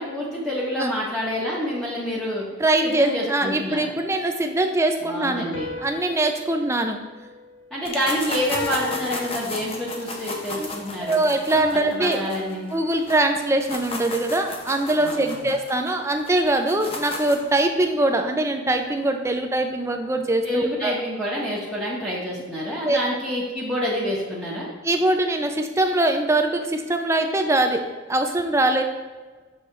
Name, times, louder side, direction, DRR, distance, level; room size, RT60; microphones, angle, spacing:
voice 1, 0.0-2.4 2.8-3.9 5.0-5.7 7.7-11.2 12.0-12.7 15.0-15.5 20.4-24.7, equal, ahead, -7 dB, 1.2 m, -27 dB
voice 2, 2.6-5.5 5.8-7.0 10.6-10.7 11.0-12.2 12.7-20.9 22.8-23.0 24.8-28.8, right 2 dB, 15° right, 5 dB, 0.5 m, -22 dB
sound 1, 3.1-4.5 5.5-8.0 8.5-10.1 11.5-13.2, left 4 dB, 65° left, 1.0 m, -37 dB
sound 2, 7.8-13.2 13.5-17.5, left 2 dB, 30° left, 0.8 m, -34 dB
6.4 x 5.4 x 3.3 m, 1.3 s
head